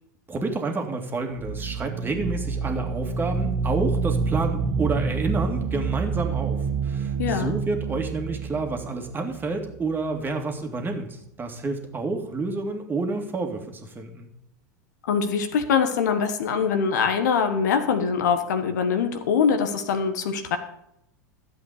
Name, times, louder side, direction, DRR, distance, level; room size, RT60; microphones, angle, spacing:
voice 1, 0.3-14.3, right 3 dB, 20° right, 3 dB, 2.1 m, -29 dB
sound 1, 1.3-10.0, right 5 dB, 45° right, 1.7 m, -28 dB
voice 2, 7.2-7.5 15.0-20.6, left 6 dB, 70° left, 7 dB, 1.4 m, -23 dB
12.5 x 7.9 x 5.0 m, 0.79 s
hypercardioid pair, 85°, 10 cm